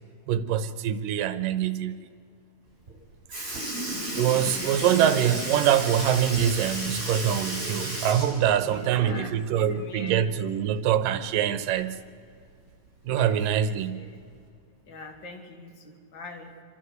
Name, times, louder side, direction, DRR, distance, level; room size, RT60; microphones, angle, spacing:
voice 1, 0.3-2.0 3.5-3.6 4.1-12.0 13.1-14.0, right 10 dB, 75° right, 2.4 m, -24 dB
Sink (filling or washing) / Liquid, 2.9-3.0 3.3-9.4 9.8-9.9 11.4-11.5 12.4-12.5 13.3-13.6 14.4-14.5, right 1 dB, 20° right, 8.0 m, -33 dB
voice 2, 3.9-4.7 8.6-9.4 9.7-10.2 13.1-14.2 14.8-16.6, left 3 dB, 35° left, 2.5 m, -43 dB
28.5 x 12.0 x 7.9 m
omnidirectional pair, 4.2 m